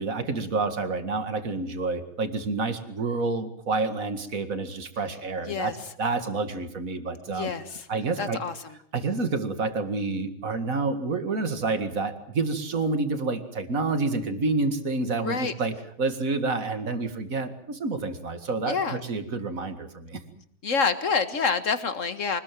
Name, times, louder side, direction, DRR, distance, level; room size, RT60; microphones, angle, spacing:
voice 1, 0.0-5.7 6.0-7.5 7.9-8.4 8.9-20.2, right 3 dB, 40° right, 9 dB, 2.3 m, -28 dB
voice 2, 7.3-7.9 8.2-8.8 15.2-15.5 18.7-19.0 20.6-22.4, left 5 dB, 40° left, 11 dB, 1.8 m, -27 dB
25.0 x 20.0 x 7.6 m, 0.63 s
omnidirectional pair, 2.3 m